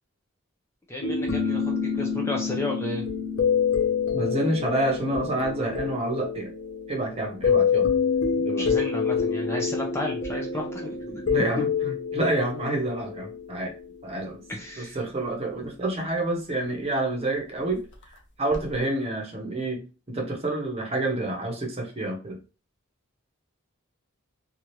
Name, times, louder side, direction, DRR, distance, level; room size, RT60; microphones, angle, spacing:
voice 1, 0.9-3.0 8.6-11.5 14.5-15.0, left 1 dB, 15° left, 0 dB, 0.5 m, -33 dB
sound 1, 1.0-14.2 18.5-18.7, left 6 dB, 60° left, 0.6 m, -27 dB
voice 2, 4.1-6.5 6.9-7.9 8.4-8.7 11.2-13.7 14.0-14.4 14.8-17.8 18.4-19.8 20.1-22.4, right 2 dB, 30° right, 1 dB, 0.8 m, -28 dB
2.8 x 2.4 x 3.1 m, 0.33 s
head